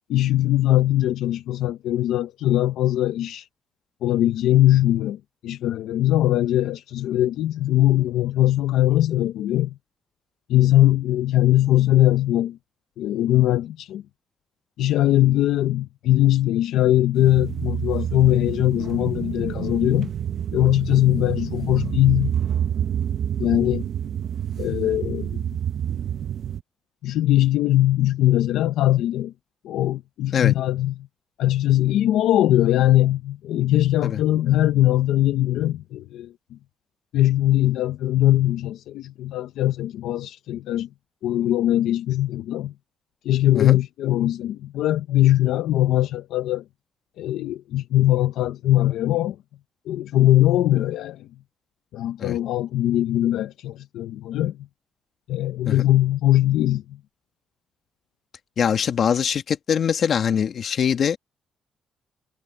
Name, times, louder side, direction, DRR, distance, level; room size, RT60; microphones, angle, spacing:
voice 1, 0.1-3.5 4.0-9.8 10.5-12.6 13.0-14.0 14.8-20.1 20.5-22.3 23.4-23.9 24.6-25.5 27.0-29.3 29.6-31.1 31.4-36.6 37.1-40.9 41.2-42.7 43.2-46.6 47.2-49.4 49.9-51.3 51.9-54.7 55.3-57.0, left 14 dB, 85° left, 0.8 m, -21 dB
sound 1, 17.2-26.6, right 9 dB, 60° right, 1.3 m, -28 dB
voice 2, 58.6-61.2, left 7 dB, 55° left, 2.2 m, -22 dB
cardioid pair, 90°, 0 cm